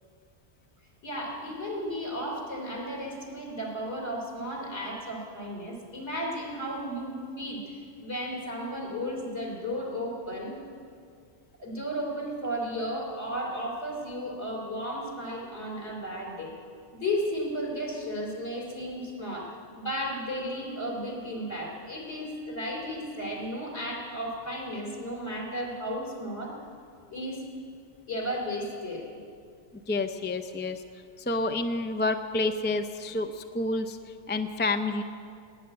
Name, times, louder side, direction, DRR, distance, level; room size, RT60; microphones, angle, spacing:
voice 1, 1.0-7.7 8.0-10.6 11.6-16.5 16.9-26.5 27.1-27.4 28.1-29.0, equal, 65° left, -2 dB, 3.8 m, -34 dB
voice 2, 29.9-30.8 31.3-34.0 34.3-35.0, left 2 dB, 15° left, 7 dB, 0.4 m, -29 dB
17.5 x 8.7 x 9.6 m, 2.3 s
omnidirectional pair, 1.2 m